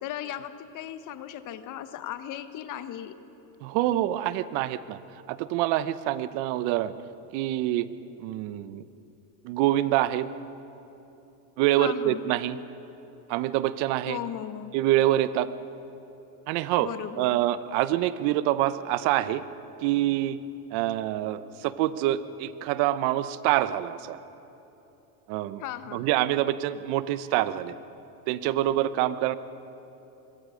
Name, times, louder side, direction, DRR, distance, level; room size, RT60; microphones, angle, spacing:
voice 1, 0.0-3.2 11.8-12.2 14.1-14.7 16.8-17.4 25.6-26.1, left 11 dB, 40° left, 11 dB, 1.3 m, -36 dB
voice 2, 3.6-5.0 5.3-6.9 7.3-7.9 8.2-8.8 9.4-10.3 11.6-12.6 13.3-14.2 14.7-15.5 16.5-19.4 19.8-20.4 20.7-24.2 25.3-25.6 25.9-27.7 28.3-29.4, right 14 dB, 55° right, 14 dB, 1.0 m, -26 dB
26.5 x 22.5 x 5.1 m, 3.0 s
supercardioid pair, 110°, 46 cm